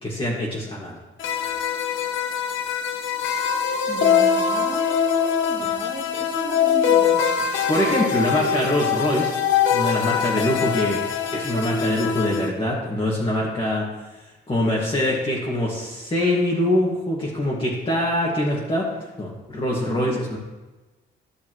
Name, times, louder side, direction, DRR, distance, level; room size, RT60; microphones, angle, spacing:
voice 1, 0.0-1.0 7.7-9.3 9.7-11.0 11.3-13.9 14.2-18.9 19.2-20.4, left 1 dB, 25° left, -4 dB, 2.0 m, -24 dB
sound 1, 1.2-12.5, left 7 dB, 75° left, 1.1 m, -23 dB
voice 2, 3.9-7.5 19.9-20.2, right 3 dB, 25° right, 1 dB, 1.6 m, -36 dB
13.0 x 6.9 x 3.2 m, 1.2 s
cardioid pair, 90°, 20 cm